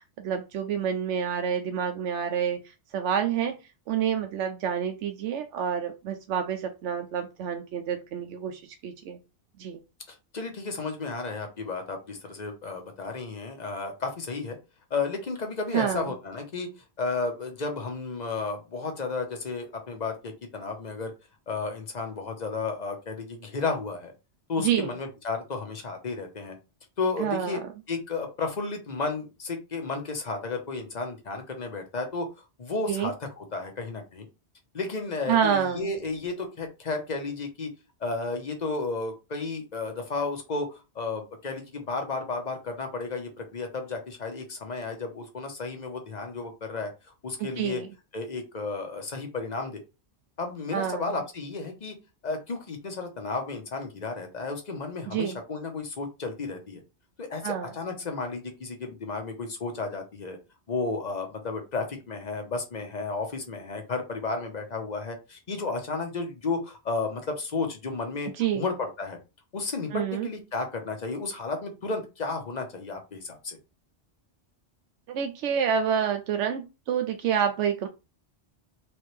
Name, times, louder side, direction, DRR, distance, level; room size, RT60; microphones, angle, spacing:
voice 1, 0.0-3.6 3.9-9.2 9.6-9.8 15.7-16.1 24.6-25.0 27.2-27.6 32.9-33.1 35.3-35.9 47.4-47.9 50.7-51.2 55.1-55.4 57.4-57.7 68.4-68.7 69.9-70.3 75.1-77.9, right 8 dB, 90° right, 6 dB, 0.9 m, -28 dB
voice 2, 10.1-14.6 14.9-16.7 17.0-21.1 21.5-24.1 24.5-26.6 27.0-27.6 27.9-32.3 32.6-34.3 34.7-37.7 38.0-46.9 47.2-47.8 48.1-49.8 50.4-51.9 52.2-56.8 57.2-60.4 60.7-69.2 69.5-73.6, left 3 dB, 40° left, 4 dB, 1.0 m, -33 dB
3.5 x 3.3 x 3.2 m, 0.28 s
omnidirectional pair, 1.2 m